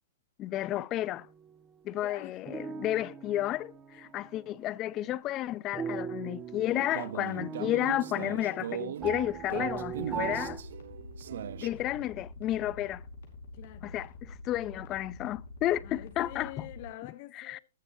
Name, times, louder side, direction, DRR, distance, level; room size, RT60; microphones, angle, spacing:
voice 1, 0.4-1.3 1.8-10.6 11.6-13.0 13.8-16.7 17.4-17.6, left 14 dB, 25° left, 0.4 m, -32 dB
sound 1, 1.1-1.5 2.5-4.5 5.7-10.6, right 7 dB, 15° right, 1.3 m, -39 dB
voice 2, 2.0-2.3 3.9-4.7 11.6-12.0 13.5-14.1 15.8-17.6, left 15 dB, 40° left, 1.0 m, -47 dB
sound 2, 6.7-11.7, right 10 dB, 65° right, 0.8 m, -39 dB
sound 3, 9.9-16.9, left 3 dB, 60° left, 5.0 m, -47 dB
19.5 x 7.0 x 2.7 m
hypercardioid pair, 155°, 0 cm